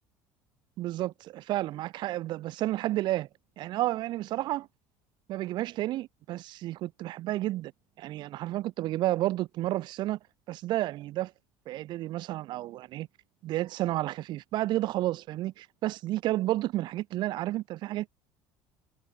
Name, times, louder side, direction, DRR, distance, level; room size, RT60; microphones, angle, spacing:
voice 1, 0.8-3.3 3.6-4.7 5.3-7.7 8.0-10.2 10.5-11.3 11.7-13.1 13.4-18.1, right 15 dB, 55° right, 0.4 m, -31 dB
supercardioid pair, 105°, 10 cm